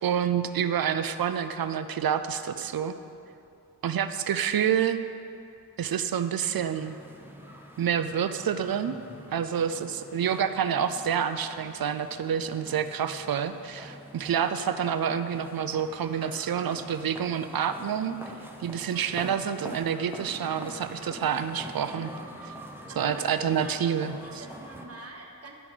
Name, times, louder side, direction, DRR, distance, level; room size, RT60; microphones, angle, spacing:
voice 1, 0.0-2.9 3.8-5.0 5.8-7.0 7.8-9.0 9.3-18.2 18.6-22.1 22.4-22.5 23.0-24.4, right 8 dB, 65° right, 11 dB, 0.5 m, -28 dB
sound 1, 6.6-24.9, equal, 5° right, 0.8 m, -45 dB
voice 2, 22.9-23.8 24.4-25.6, right 2 dB, 40° right, 1 dB, 1.2 m, -46 dB
11.0 x 4.1 x 5.9 m, 2.6 s
wide cardioid pair, 80°, 39 cm